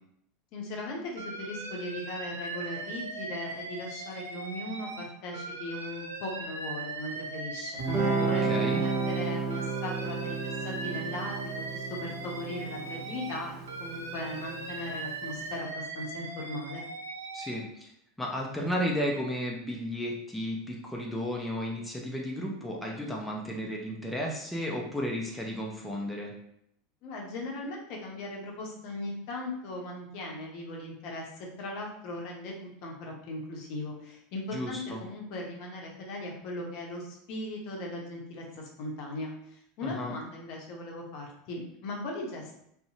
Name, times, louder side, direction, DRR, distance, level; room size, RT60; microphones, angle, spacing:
voice 1, 0.5-16.8 27.0-31.3 31.6-42.5, left 1 dB, 55° left, 0 dB, 0.6 m, -38 dB
Alarm, 1.2-5.0 5.3-9.2 9.5-13.4 13.7-17.5, right 3 dB, 80° right, 0.3 m, -39 dB
Guitar, 7.8-14.9, right 4 dB, 40° right, 0.8 m, -32 dB
voice 2, 8.2-8.8 17.3-17.9 18.2-26.3 34.5-35.0 39.8-40.1, equal, 5° left, -2 dB, 0.5 m, -33 dB
2.6 x 2.1 x 2.6 m, 0.72 s
figure-of-eight pair, 80°, 0 cm